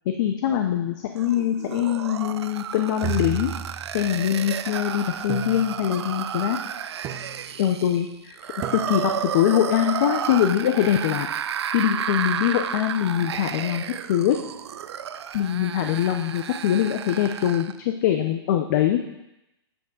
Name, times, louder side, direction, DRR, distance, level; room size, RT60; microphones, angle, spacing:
voice 1, 0.1-3.5 3.9-6.6 7.6-8.1 8.9-11.3 11.7-14.4 15.3-19.0, left 11 dB, 45° left, 5 dB, 0.6 m, -23 dB
sound 1, 1.2-17.8, right 9 dB, 80° right, 0.4 m, -32 dB
sound 2, 3.0-4.2 5.3-6.1 7.0-7.7 8.6-9.3, right 8 dB, 20° right, 0.5 m, -33 dB
7.8 x 3.5 x 6.4 m, 0.90 s
hypercardioid pair, 145°, 14 cm